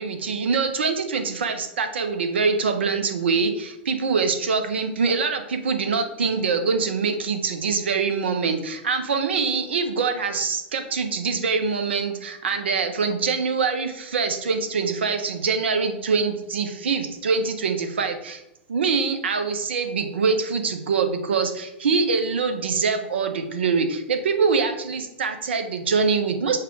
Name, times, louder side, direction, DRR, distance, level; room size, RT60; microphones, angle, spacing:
voice 1, 0.0-18.4 18.7-26.6, right 5 dB, 65° right, 6 dB, 0.6 m, -24 dB
5.5 x 2.2 x 3.7 m, 0.87 s
figure-of-eight pair, 95°, 6 cm